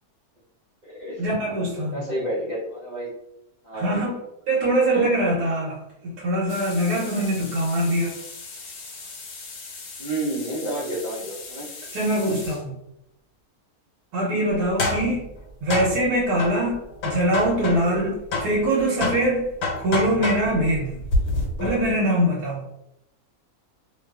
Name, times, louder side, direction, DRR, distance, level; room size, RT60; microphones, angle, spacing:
voice 1, 1.2-2.0 3.7-4.2 4.5-8.1 11.9-12.7 14.1-15.3 15.6-19.5 19.8-21.0 21.6-22.6, right 1 dB, 90° right, -4 dB, 1.2 m, -23 dB
voice 2, 1.9-3.1 3.6-4.1 10.0-11.7, right 1 dB, 45° right, -9 dB, 0.5 m, -30 dB
sound 1, 6.5-12.6 14.5-18.0 18.3-22.0, left 2 dB, 80° left, 1.1 m, -31 dB
2.6 x 2.3 x 2.3 m, 0.82 s
omnidirectional pair, 1.6 m